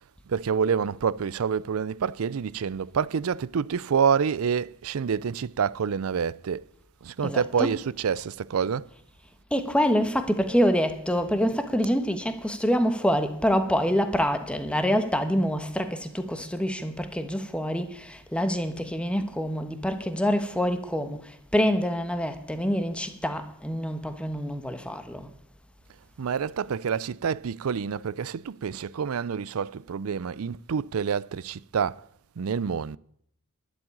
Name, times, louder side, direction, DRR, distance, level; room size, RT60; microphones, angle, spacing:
voice 1, 0.3-6.6 7.0-8.9 26.2-32.0 32.4-33.0, right 6 dB, 85° right, 0.5 m, -27 dB
voice 2, 7.2-7.8 9.5-25.3, equal, 5° left, 1.2 m, -26 dB
11.5 x 7.4 x 9.8 m
head